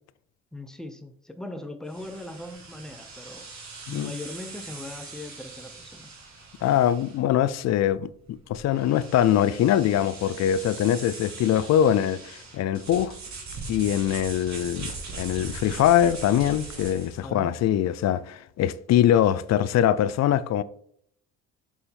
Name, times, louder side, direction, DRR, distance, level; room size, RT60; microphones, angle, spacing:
voice 1, 0.5-3.5 3.9-6.1 17.2-17.6, left 2 dB, ahead, 0.8 m, -39 dB
sound 1, 1.9-17.2, right 4 dB, 45° right, 1.9 m, -41 dB
voice 2, 6.6-13.1 13.7-20.6, left 10 dB, 45° left, 0.5 m, -23 dB
6.8 x 3.6 x 4.3 m
hypercardioid pair, 60°, 37 cm